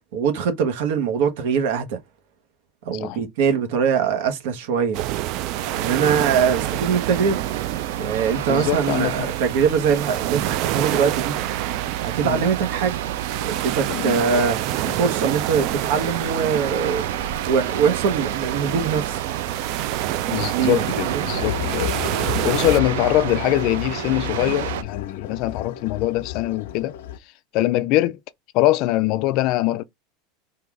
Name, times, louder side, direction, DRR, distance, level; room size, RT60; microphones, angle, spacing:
voice 1, 0.1-2.0 2.8-5.0 5.7-7.4 8.0-11.3 12.0-13.0 13.4-14.6 14.9-17.1 17.5-19.2 20.5-21.3, right 6 dB, 65° right, 1.3 m, -22 dB
sound 1, 4.9-22.8, right 15 dB, 45° right, 0.4 m, -28 dB
sound 2, 5.5-24.8, right 10 dB, 85° right, 0.7 m, -30 dB
voice 2, 8.5-9.3 12.2-12.5 13.9-14.3 20.3-21.9 22.2-27.0 27.5-28.2 28.5-29.8, left 16 dB, 45° left, 0.4 m, -23 dB
sound 3, 21.3-27.2, left 10 dB, 80° left, 0.8 m, -31 dB
3.9 x 2.8 x 4.8 m
supercardioid pair, 165°, 0 cm